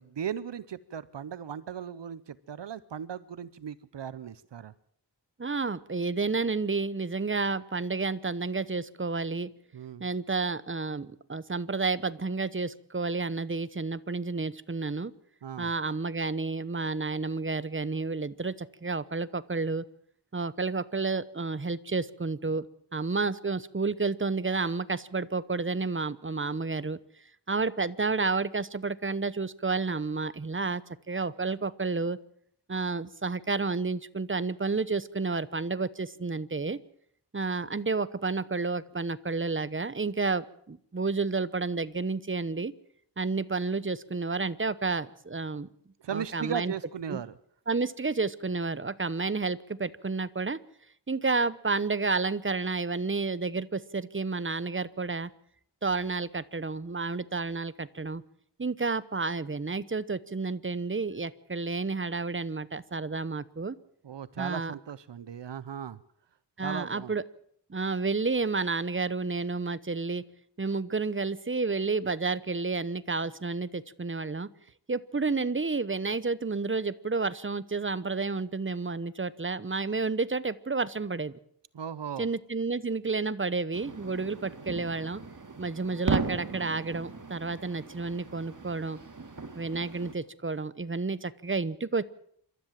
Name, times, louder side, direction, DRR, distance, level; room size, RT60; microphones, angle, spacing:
voice 1, 0.0-4.7 9.7-10.1 15.4-15.7 46.0-47.3 64.0-66.0 66.6-67.1 81.7-82.3, right 8 dB, 85° right, 17 dB, 0.8 m, -37 dB
voice 2, 5.4-9.5 10.0-15.1 15.6-19.8 20.3-22.7 22.9-27.0 27.5-32.2 32.7-36.8 37.3-42.7 43.2-45.7 46.1-46.7 47.1-47.2 47.7-50.6 51.1-55.3 55.8-58.2 58.6-63.8 64.4-64.7 66.6-67.2 67.7-70.2 70.6-74.5 74.9-81.4 82.2-85.2 85.6-89.0 89.6-92.0, right 4 dB, 30° right, 17 dB, 0.9 m, -30 dB
sound 1, 83.7-90.1, right 4 dB, 45° right, 2.3 m, -36 dB
27.5 x 13.0 x 7.4 m, 0.66 s
wide cardioid pair, 80°, 42 cm